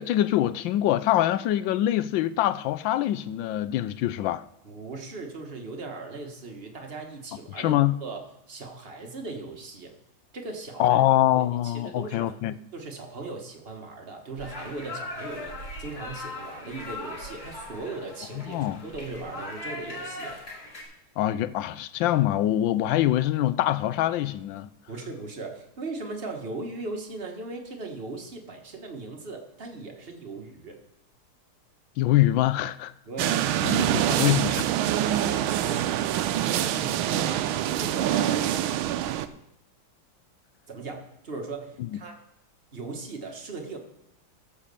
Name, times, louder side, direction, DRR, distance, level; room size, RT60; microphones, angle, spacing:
voice 1, 0.0-4.4 7.6-7.9 10.8-12.5 18.5-18.8 21.2-24.7 32.0-32.9 33.6-34.7 41.9-42.0, left 13 dB, 75° left, 1.1 m, -24 dB
voice 2, 4.6-10.0 10.3-11.0 11.3-12.3 12.7-20.4 24.9-30.8 33.1-34.7 35.0-39.4 40.7-42.2 42.7-43.8, right 3 dB, 30° right, 1.5 m, -38 dB
sound 1, 14.4-20.8, left 2 dB, 45° left, 4.2 m, -39 dB
sound 2, 33.2-39.3, right 11 dB, 80° right, 1.4 m, -25 dB
15.0 x 5.3 x 6.9 m
omnidirectional pair, 2.3 m